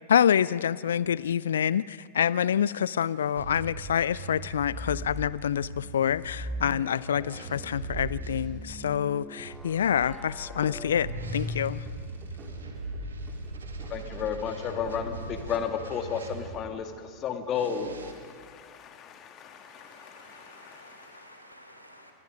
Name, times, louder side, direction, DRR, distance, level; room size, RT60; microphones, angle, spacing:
voice 1, 0.1-11.1 11.3-11.8, left 9 dB, 65° left, 0.4 m, -27 dB
sound 1, 3.3-8.4 9.4-16.7 17.5-18.1, right 3 dB, 70° right, 2.1 m, -40 dB
sound 2, 4.4-5.4 6.2-12.2, left 1 dB, ahead, 0.5 m, -40 dB
sound 3, 11.0-16.6, right 2 dB, 25° right, 3.4 m, -53 dB
voice 2, 13.9-21.2, left 7 dB, 30° left, 2.0 m, -34 dB
voice 3, 19.2-22.1, equal, 90° left, 3.0 m, -53 dB
28.0 x 21.5 x 5.2 m
figure-of-eight pair, 90°, 0 cm